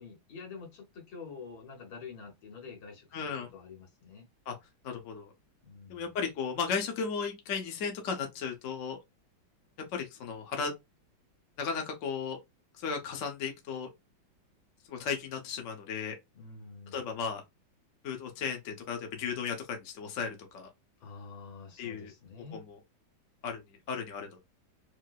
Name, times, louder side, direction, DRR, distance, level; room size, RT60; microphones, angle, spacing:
voice 1, 0.0-4.2 5.6-6.1 16.3-17.1 21.0-22.6, left 5 dB, 85° left, 2.1 m, -47 dB
voice 2, 3.1-3.5 4.5-4.6 4.8-5.3 5.9-9.0 9.9-10.7 11.6-12.4 12.8-13.9 14.9-16.2 16.9-17.4 18.0-20.7 21.8-22.1 22.5-22.8 23.4-23.6 23.9-24.4, left 6 dB, 50° left, 1.0 m, -35 dB
4.5 x 2.0 x 2.3 m
omnidirectional pair, 2.1 m